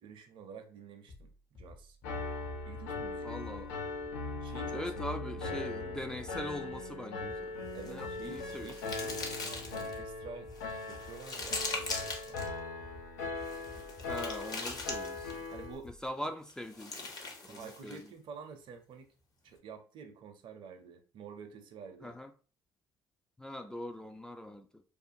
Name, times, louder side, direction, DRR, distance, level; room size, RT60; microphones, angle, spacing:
voice 1, 0.0-1.3 1.6-2.0 2.6-3.7 4.2-5.7 7.7-10.5 10.8-12.4 15.5-15.9 17.4-19.1 19.4-22.2, right 5 dB, 60° right, 0.5 m, -49 dB
sound 1, 1.1-16.1, left 2 dB, 55° left, 1.2 m, -54 dB
Piano, 2.0-15.8, left 3 dB, 80° left, 0.4 m, -40 dB
voice 2, 3.2-3.7 4.7-7.5 7.9-9.1 14.0-15.5 16.0-17.0 17.4-18.1 22.0-22.3 23.4-24.8, left 1 dB, 5° left, 0.3 m, -42 dB
sound 2, 7.7-10.0 10.5-12.5 13.4-15.5 16.5-18.1, left 3 dB, 40° left, 0.8 m, -41 dB
2.4 x 2.4 x 2.6 m
hypercardioid pair, 55°, 10 cm